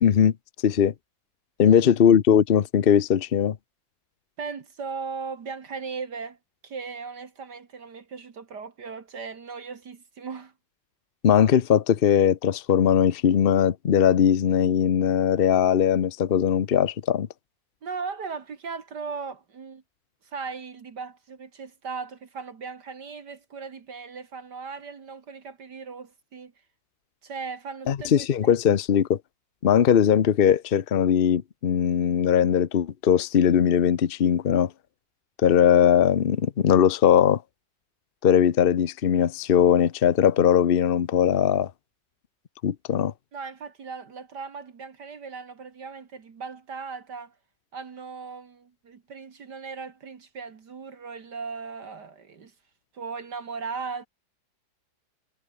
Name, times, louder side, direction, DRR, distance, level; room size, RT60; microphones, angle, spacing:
voice 1, 0.0-0.3 0.6-0.9 1.6-3.6 11.2-17.3 27.9-29.2 29.6-34.7 35.4-37.4 38.2-41.7 42.6-43.1, left 8 dB, 75° left, 0.5 m, -20 dB
voice 2, 1.7-2.0 4.4-6.4 6.6-10.5 17.8-19.8 20.3-26.5 27.2-28.6 43.3-47.3 47.7-52.5 52.9-54.1, right 5 dB, 55° right, 2.4 m, -37 dB
omnidirectional pair, 2.2 m